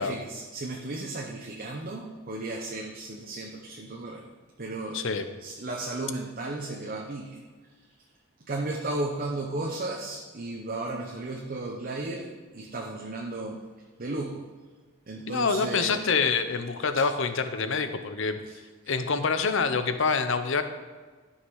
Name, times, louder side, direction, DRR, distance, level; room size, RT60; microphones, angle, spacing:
voice 1, 0.0-4.2 4.6-5.0 5.4-7.4 8.5-13.6 14.0-14.4 15.1-16.0 18.5-18.6, right 2 dB, 40° right, 0 dB, 0.8 m, -34 dB
voice 2, 4.9-5.3 15.3-18.4 18.9-20.6, left 5 dB, 60° left, 9 dB, 0.7 m, -26 dB
13.0 x 5.7 x 4.8 m, 1.4 s
head